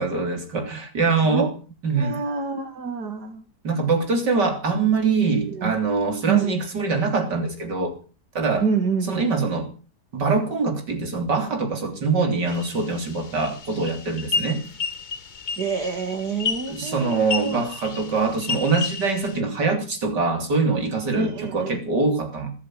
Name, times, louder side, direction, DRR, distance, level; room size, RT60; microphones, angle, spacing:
voice 1, 0.0-1.5 1.8-2.2 3.6-8.0 8.3-8.6 9.1-9.7 10.1-14.6 16.7-22.5, right 4 dB, 85° right, 4 dB, 4.0 m, -23 dB
voice 2, 1.9-3.4 5.4-5.7 6.2-6.6 8.6-9.4 15.6-17.7 21.1-21.8, right 5 dB, 70° right, 9 dB, 2.6 m, -27 dB
sound 1, 12.5-19.4, left 5 dB, 40° left, 0.8 m, -32 dB
20.5 x 8.5 x 7.6 m, 0.38 s
omnidirectional pair, 1.8 m